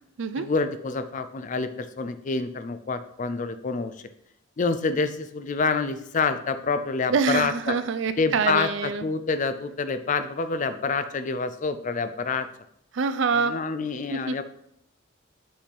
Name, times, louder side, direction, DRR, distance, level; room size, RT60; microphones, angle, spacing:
voice 1, 0.4-3.9 4.6-7.5 8.2-12.5 13.3-14.4, left 4 dB, 40° left, 11 dB, 0.4 m, -27 dB
voice 2, 7.1-9.1 12.9-13.6 14.1-14.4, right 5 dB, 65° right, 11 dB, 0.4 m, -25 dB
7.3 x 3.5 x 4.4 m, 0.72 s
head